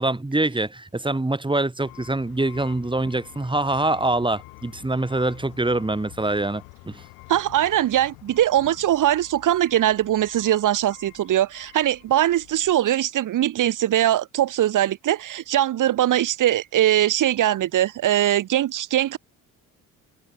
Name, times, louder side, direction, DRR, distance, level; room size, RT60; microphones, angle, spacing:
voice 1, 0.0-7.0, right 2 dB, 15° right, 5.1 m, -24 dB
sound 1, 1.8-12.8, left 29 dB, 90° left, 7.7 m, -47 dB
voice 2, 7.3-19.2, right 12 dB, 60° right, 1.2 m, -21 dB
supercardioid pair, 70°, 36 cm